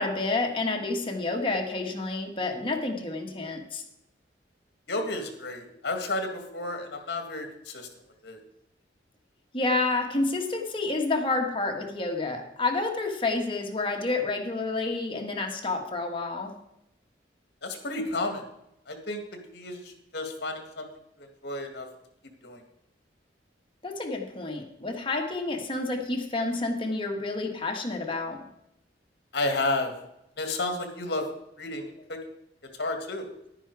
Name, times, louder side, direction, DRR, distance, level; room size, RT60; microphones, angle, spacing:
voice 1, 0.0-3.8 9.5-16.5 23.8-28.5, left 3 dB, 30° left, 3 dB, 1.5 m, -29 dB
voice 2, 4.9-7.9 8.2-8.4 17.6-18.4 18.9-19.2 19.5-19.8 20.1-20.9 21.4-21.9 22.4-22.6 29.3-29.9 30.4-31.2 31.6-31.8 32.1-32.2 32.8-33.3, left 2 dB, 60° left, 5 dB, 2.0 m, -31 dB
10.5 x 10.0 x 4.7 m, 0.82 s
head